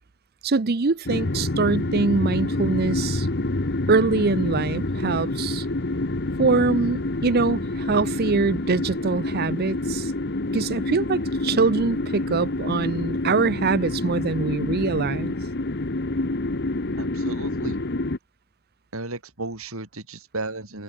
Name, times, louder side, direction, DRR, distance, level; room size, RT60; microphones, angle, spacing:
voice 1, 0.4-3.3 3.9-5.7 6.4-10.1 10.5-15.3, right 4 dB, 45° right, 0.7 m, -23 dB
sound 1, 1.1-18.2, left 2 dB, 50° left, 1.2 m, -27 dB
voice 2, 17.0-17.8 18.9-20.8, right 2 dB, 70° right, 4.5 m, -34 dB
head